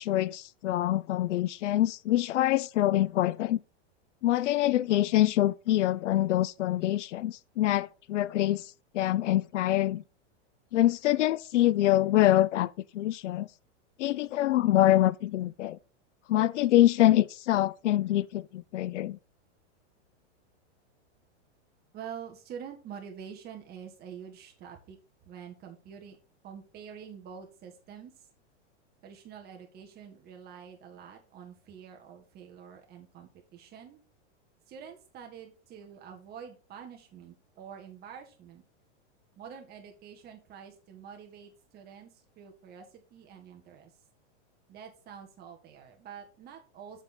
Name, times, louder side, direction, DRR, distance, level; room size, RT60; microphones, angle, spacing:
voice 1, 0.0-3.6 4.2-8.6 8.9-10.0 10.7-13.5 14.0-15.8 16.3-19.2, left 14 dB, 85° left, 0.5 m, -25 dB
voice 2, 21.9-26.2 26.4-28.1 29.0-34.0 34.7-38.6 39.4-43.9 44.7-47.0, right 7 dB, 25° right, 1.7 m, -47 dB
7.4 x 5.4 x 4.3 m
supercardioid pair, 145°, 35 cm